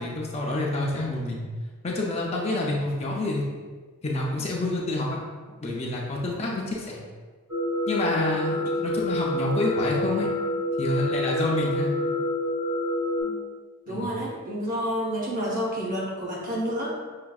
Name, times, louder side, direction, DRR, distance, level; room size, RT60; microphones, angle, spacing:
voice 1, 0.0-1.4 1.8-3.4 4.0-5.2 5.6-7.0 7.9-8.6 8.8-10.3 10.8-11.9 13.9-14.1, left 2 dB, 30° left, -3 dB, 0.5 m, -28 dB
voice 2, 6.3-6.7 8.5-8.8 13.2-13.4 13.9-16.9, equal, 40° right, -4 dB, 0.9 m, -30 dB
sound 1, 7.5-13.2, left 1 dB, 60° right, 1.3 m, -27 dB
5.7 x 2.5 x 2.3 m, 1.4 s
head